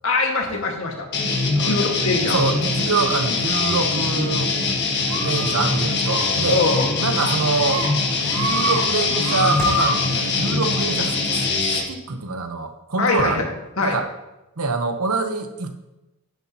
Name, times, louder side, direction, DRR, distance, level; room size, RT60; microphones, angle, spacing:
voice 1, 0.0-1.1 1.6-2.4 6.5-6.9 13.0-13.4 13.8-14.0, left 3 dB, 65° left, 1 dB, 1.8 m, -22 dB
sound 1, 1.1-11.8, left 3 dB, 50° left, 1.6 m, -23 dB
voice 2, 2.3-4.5 5.2-6.6 7.0-7.9 8.4-13.4 13.8-14.1 14.6-15.8, right 4 dB, 85° right, 7 dB, 1.0 m, -25 dB
sound 2, 3.4-10.0, left 1 dB, 10° left, 3.2 m, -39 dB
sound 3, 5.1-5.7 6.0-6.2 6.6-6.8 7.1-7.9 8.2-8.8 9.1-9.9, right 1 dB, 65° right, 1.8 m, -26 dB
10.5 x 10.5 x 3.0 m, 0.97 s
head